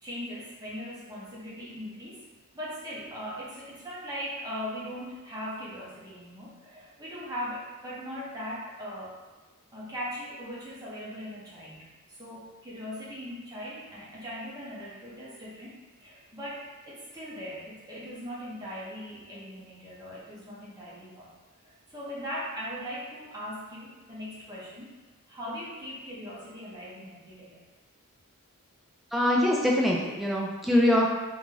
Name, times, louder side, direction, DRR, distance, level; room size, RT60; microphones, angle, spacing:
voice 1, 0.0-2.3 2.5-9.2 9.7-21.3 21.6-24.9 25.3-27.6, equal, 20° right, -7 dB, 0.7 m, -39 dB
voice 2, 29.1-31.1, left 1 dB, ahead, -3 dB, 0.3 m, -23 dB
2.5 x 2.2 x 3.1 m, 1.2 s
head